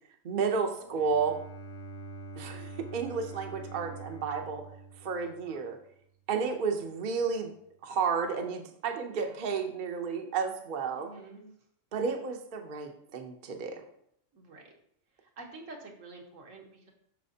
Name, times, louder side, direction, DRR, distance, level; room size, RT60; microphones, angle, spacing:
voice 1, 0.2-1.4 2.4-4.6 5.0-5.8 6.3-7.5 7.8-11.1 11.9-13.8, right 5 dB, 45° right, 4 dB, 0.8 m, -32 dB
voice 2, 0.8-1.1 5.4-5.6 9.1-9.4 11.0-11.5 14.3-14.6 15.2-16.9, right 3 dB, 80° right, 0 dB, 1.6 m, -49 dB
Bowed string instrument, 0.9-5.8, right 3 dB, 60° left, 1.3 m, -45 dB
7.6 x 6.0 x 2.8 m, 0.69 s
omnidirectional pair, 1.3 m